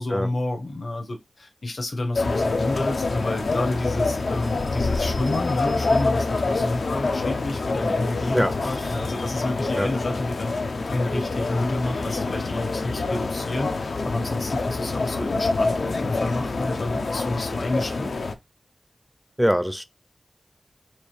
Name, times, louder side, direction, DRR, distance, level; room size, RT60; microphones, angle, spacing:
voice 1, 0.0-10.5 10.9-18.1, left 2 dB, 60° left, 1.0 m, -29 dB
sound 1, 2.1-18.3, left 3 dB, 85° left, 0.6 m, -26 dB
voice 2, 19.4-19.9, equal, 5° right, 0.4 m, -22 dB
4.4 x 2.5 x 3.2 m
wide cardioid pair, 85°, 0 cm